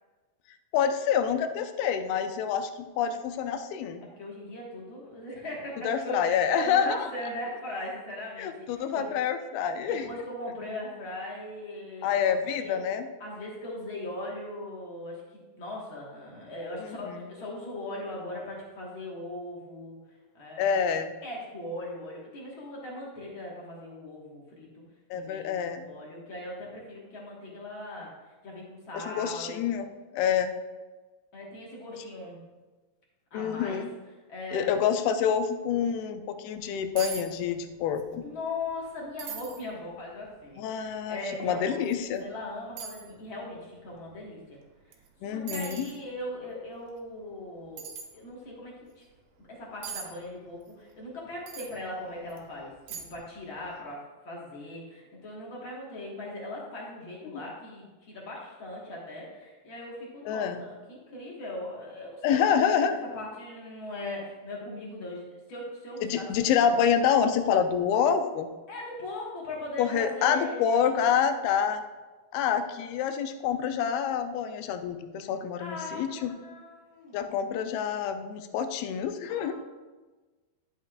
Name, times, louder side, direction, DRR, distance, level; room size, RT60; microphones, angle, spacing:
voice 1, 0.7-4.0 5.8-7.1 8.4-10.0 12.0-13.1 16.8-17.2 20.6-21.2 25.1-25.9 28.9-29.9 30.1-30.5 33.3-33.9 34.5-38.2 40.6-41.2 41.4-42.2 45.2-45.9 60.3-60.6 62.2-62.9 66.0-68.5 69.8-71.8 72.3-76.3 77.1-79.5, left 7 dB, 85° left, 9 dB, 2.5 m, -27 dB
voice 2, 4.2-9.1 9.9-12.3 12.6-12.8 13.2-20.0 20.3-20.8 21.2-24.8 25.1-29.6 31.3-32.4 33.3-33.8 34.3-34.7 38.2-41.7 42.2-44.6 44.9-45.0 45.2-47.9 48.1-49.0 49.4-62.4 63.0-66.8 68.7-71.0 75.6-77.3 79.3-79.5, left 1 dB, 55° left, -4 dB, 1.4 m, -39 dB
sound 1, 36.6-36.7 37.0-37.3 37.5-38.1 38.5-38.6 39.2-39.6 40.3-40.4 41.9-42.0 42.8-43.1 44.9-45.1 45.5-46.0 47.8-48.1 49.8-50.1 51.5-51.7 52.3-52.4 52.9-53.3 53.6-53.7, right 7 dB, 85° right, 2.9 m, -39 dB
11.0 x 8.2 x 2.4 m, 1.3 s
omnidirectional pair, 4.5 m